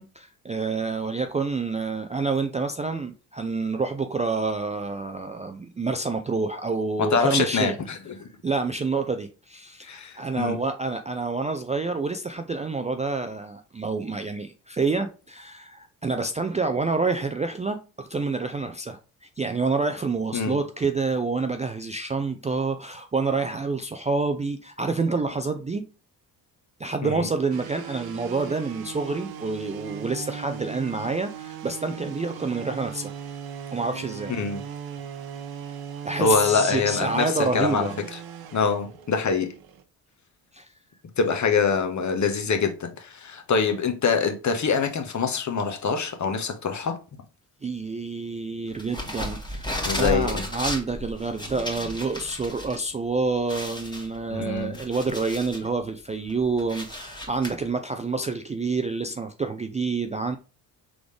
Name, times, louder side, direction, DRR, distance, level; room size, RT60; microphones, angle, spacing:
voice 1, 0.0-7.8 8.4-25.8 26.8-33.1 33.7-34.3 36.0-38.0 40.5-40.7 47.6-60.4, right 3 dB, 15° right, 0.4 m, -28 dB
voice 2, 7.0-8.3 9.8-10.6 20.3-20.6 27.0-27.3 34.3-34.6 36.2-38.2 38.5-39.5 41.2-47.0 49.8-50.5 54.3-54.8, left 5 dB, 40° left, 1.0 m, -25 dB
sound 1, 27.5-39.8, right 8 dB, 55° right, 0.8 m, -38 dB
sound 2, 48.8-52.8 53.1-53.2 53.5-55.7 56.1-57.5, left 1 dB, 10° left, 1.6 m, -33 dB
3.9 x 3.4 x 3.2 m
supercardioid pair, 55°, 44 cm